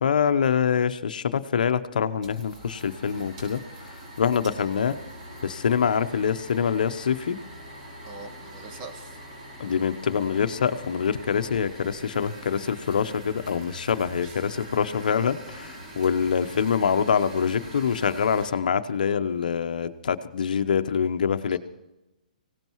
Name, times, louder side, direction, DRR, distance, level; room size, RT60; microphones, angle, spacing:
voice 1, 0.0-4.9 5.4-7.4 9.6-21.6, left 7 dB, 75° left, 10 dB, 0.9 m, -25 dB
sound 1, 2.2-18.5, equal, 55° right, 5.1 m, -43 dB
voice 2, 8.0-9.2 14.2-14.4 21.5-21.6, right 3 dB, 30° right, 3 dB, 2.4 m, -43 dB
24.0 x 17.0 x 3.1 m, 0.99 s
hypercardioid pair, 140°, 5 cm